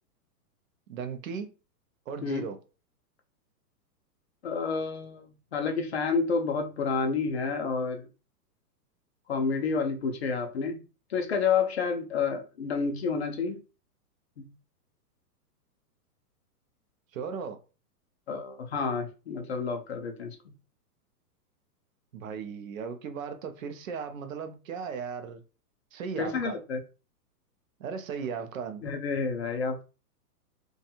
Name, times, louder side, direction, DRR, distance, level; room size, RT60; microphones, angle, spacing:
voice 1, 0.9-1.5 2.1-2.6 17.1-17.6 22.1-25.4 25.9-26.6 27.8-28.9, right 6 dB, 55° right, 0.5 m, -36 dB
voice 2, 4.4-8.1 9.3-10.8 11.1-13.6 14.4-14.5 18.3-20.4 26.2-26.8 28.8-29.8, left 5 dB, 45° left, 0.4 m, -29 dB
2.5 x 2.3 x 2.7 m
hypercardioid pair, 170°, 48 cm